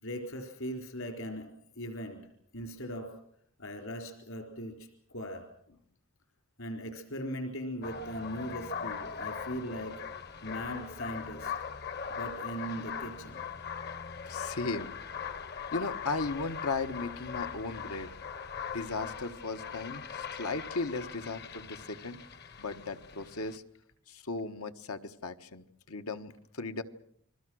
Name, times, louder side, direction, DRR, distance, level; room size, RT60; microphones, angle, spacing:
voice 1, 0.0-1.5 1.8-2.3 2.5-3.1 3.6-5.5 6.6-10.0 10.4-11.5 12.1-13.4, equal, 65° left, 5 dB, 4.2 m, -39 dB
sound 1, 7.8-23.6, left 6 dB, 45° left, 1.0 m, -40 dB
voice 2, 14.3-14.9 15.7-18.1 18.7-22.2 22.6-23.6 24.1-26.8, left 3 dB, 80° left, 8 dB, 1.4 m, -36 dB
29.5 x 22.0 x 6.3 m, 0.68 s
head